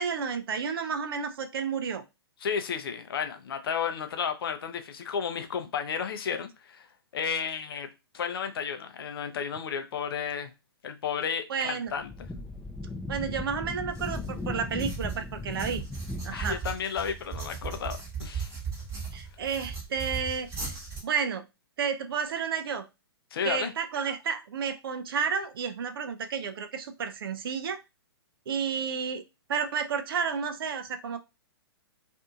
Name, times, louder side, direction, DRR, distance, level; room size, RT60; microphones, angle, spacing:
voice 1, 0.0-2.0 11.5-11.9 13.1-15.8 16.2-16.6 19.1-20.7 21.0-21.4 21.8-22.8 23.4-27.8 28.5-29.2 29.5-31.2, right 6 dB, 60° right, 0.5 m, -31 dB
voice 2, 2.4-6.9 7.1-7.9 8.1-10.5 10.8-12.1 16.3-18.5 23.3-23.7, left 7 dB, 60° left, 0.6 m, -32 dB
Wind, 11.9-16.7, left 2 dB, 5° left, 0.4 m, -37 dB
sound 1, 13.9-21.0, right 5 dB, 20° right, 1.1 m, -38 dB
2.6 x 2.6 x 2.3 m
figure-of-eight pair, 120°, 14 cm